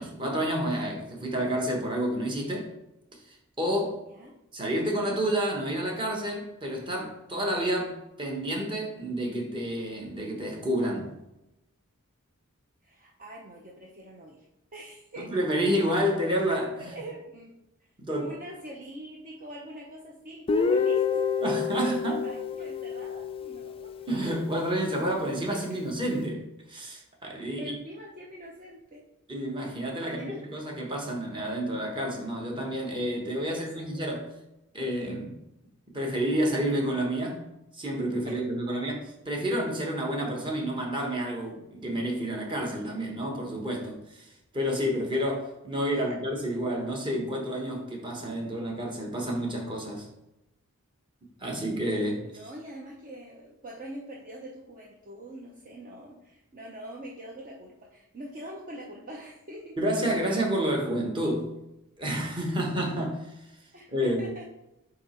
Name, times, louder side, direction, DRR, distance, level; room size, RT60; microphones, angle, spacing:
voice 1, 0.0-2.7 3.3-4.0 4.5-11.1 15.2-16.8 18.0-18.3 21.4-22.2 24.1-27.8 29.3-34.3 34.7-35.4 35.9-37.4 37.7-39.0 39.3-44.3 44.5-50.1 51.4-52.2 59.8-61.5 62.0-63.3 63.9-64.3, equal, 20° right, 1.2 m, -29 dB
voice 2, 12.8-14.5 14.7-15.4 16.9-17.5 17.8-17.9 18.2-23.9 25.5-25.8 27.6-29.0 30.0-30.5 33.5-33.9 38.3-38.4 45.9-46.2 52.2-59.8 63.7-64.5, right 1 dB, 40° right, 0.7 m, -43 dB
Guitar, 20.5-24.3, left 5 dB, 25° left, 0.3 m, -28 dB
8.2 x 2.9 x 4.3 m
head